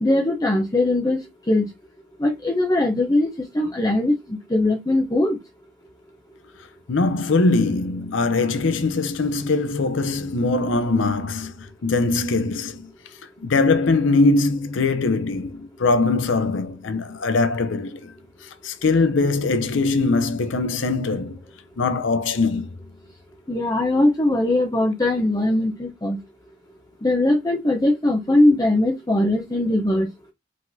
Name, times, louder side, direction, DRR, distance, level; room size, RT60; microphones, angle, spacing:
voice 1, 0.0-1.2 1.5-1.7 2.2-3.3 3.5-5.4 23.5-26.2 27.0-30.1, left 1 dB, 20° left, 0.6 m, -20 dB
voice 2, 6.9-12.9 13.4-18.1 18.6-21.4 21.8-22.7, left 3 dB, 70° left, 0.6 m, -21 dB
5.0 x 3.9 x 2.6 m
head